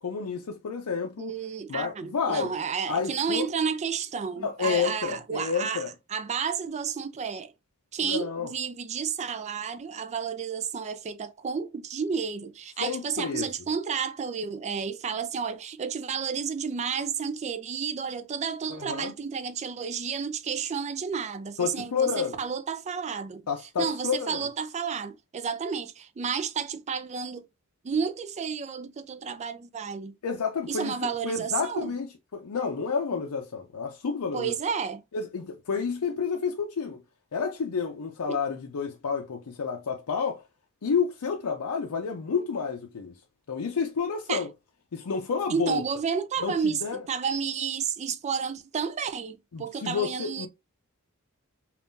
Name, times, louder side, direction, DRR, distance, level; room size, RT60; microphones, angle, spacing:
voice 1, 0.0-1.3 1.7-2.5 2.9-3.5 4.4-5.9 8.0-8.5 12.8-13.5 18.7-19.1 21.6-22.4 23.5-24.4 30.2-32.1 32.3-34.5 35.1-37.0 37.3-40.4 40.8-43.2 43.5-44.5 44.9-45.8 46.4-47.0 49.5-50.5, left 6 dB, 90° left, 0.5 m, -30 dB
voice 2, 1.2-5.8 6.1-7.5 7.9-23.4 23.8-27.5 27.8-30.2 30.7-31.9 34.3-35.0 38.2-38.4 44.3-44.4 45.5-50.5, right 6 dB, 30° right, 0.4 m, -31 dB
3.6 x 2.4 x 2.5 m
head